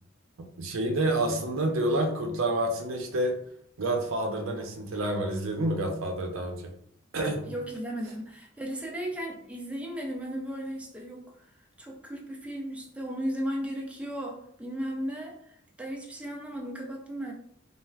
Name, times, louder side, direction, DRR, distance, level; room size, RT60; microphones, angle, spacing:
voice 1, 0.6-3.4 3.8-6.7 7.1-7.4, right 1 dB, 90° right, 3 dB, 0.5 m, -28 dB
voice 2, 7.5-11.3 11.8-17.3, equal, 5° right, 0 dB, 0.4 m, -35 dB
3.3 x 2.4 x 2.2 m, 0.67 s
head